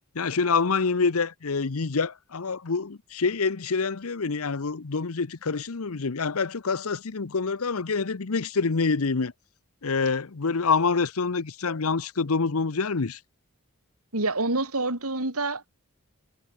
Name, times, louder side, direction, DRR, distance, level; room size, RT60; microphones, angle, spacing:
voice 1, 0.1-9.3 9.8-13.2, left 4 dB, 80° left, 0.8 m, -26 dB
voice 2, 14.1-15.8, right 2 dB, 85° right, 4.4 m, -27 dB
head